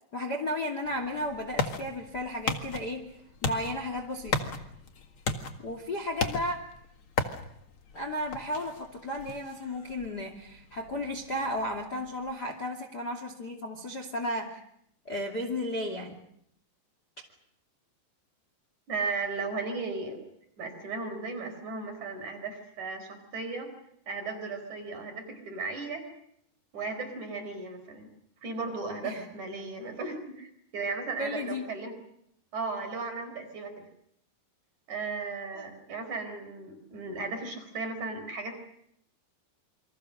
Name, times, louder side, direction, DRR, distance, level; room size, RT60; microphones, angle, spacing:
voice 1, 0.1-3.1 3.4-4.5 5.6-6.6 7.9-14.6 15.0-16.2 29.0-29.3 31.2-31.6 35.5-35.7, left 1 dB, 30° left, 4 dB, 2.4 m, -34 dB
sound 1, 0.8-12.3, left 4 dB, 55° left, 1.5 m, -37 dB
voice 2, 18.9-20.2 20.6-23.7 24.1-26.1 26.7-28.1 28.4-31.9 32.5-33.9 34.9-38.6, right 4 dB, 40° right, 4 dB, 5.5 m, -36 dB
28.5 x 25.0 x 6.6 m, 0.73 s
omnidirectional pair, 5.2 m